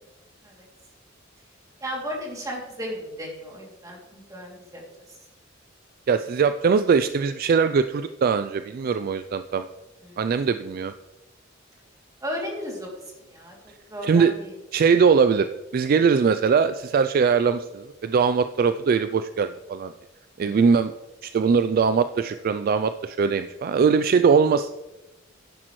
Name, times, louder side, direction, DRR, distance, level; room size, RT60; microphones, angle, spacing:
voice 1, 1.8-4.8 10.0-10.2 12.2-12.9 13.3-13.5 13.9-14.5 20.4-20.6, equal, 20° right, -2 dB, 2.7 m, -34 dB
voice 2, 6.1-9.6 10.2-10.9 14.0-14.3 14.7-15.5 15.7-19.9 20.4-20.9 21.2-24.7, right 5 dB, 50° right, 11 dB, 0.3 m, -21 dB
10.5 x 10.0 x 3.1 m, 0.98 s
head